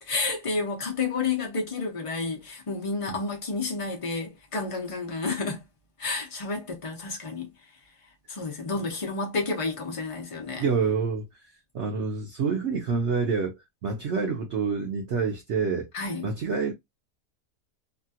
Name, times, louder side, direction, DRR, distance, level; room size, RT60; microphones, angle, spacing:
voice 1, 0.1-5.6 6.0-7.5 8.3-10.6 15.9-16.3, left 3 dB, 50° left, 0.3 m, -30 dB
voice 2, 10.6-11.4 11.7-15.9 16.2-16.7, right 5 dB, 60° right, 0.8 m, -27 dB
2.9 x 2.3 x 2.7 m
omnidirectional pair, 1.7 m